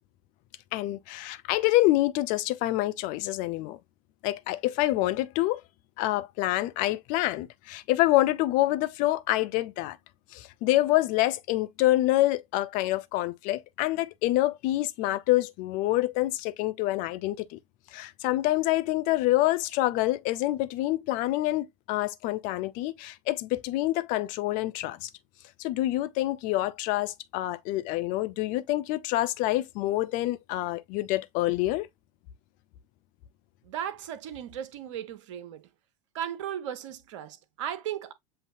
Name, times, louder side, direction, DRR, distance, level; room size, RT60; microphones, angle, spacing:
voice 1, 0.7-3.8 4.2-5.6 6.0-10.0 10.3-17.6 17.9-25.1 25.6-31.9, left 16 dB, 50° left, 0.6 m, -27 dB
voice 2, 33.7-35.6 36.1-38.1, right 10 dB, 65° right, 0.9 m, -36 dB
7.7 x 2.6 x 2.6 m
hypercardioid pair, 90°, 17 cm